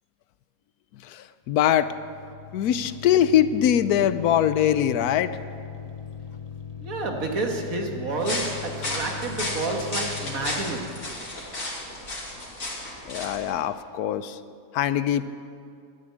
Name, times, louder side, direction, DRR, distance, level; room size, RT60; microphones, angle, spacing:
voice 1, 1.5-1.9 2.5-5.3 13.1-14.3 14.7-15.3, left 10 dB, 85° left, 14 dB, 1.1 m, -22 dB
sound 1, 1.6-11.3, left 7 dB, 30° left, 0.8 m, -40 dB
voice 2, 6.8-11.0, right 3 dB, 65° right, 2 dB, 2.0 m, -30 dB
sound 2, 8.2-13.5, left 1 dB, 65° left, 3.0 m, -33 dB
13.0 x 9.5 x 9.4 m, 2.4 s
omnidirectional pair, 1.6 m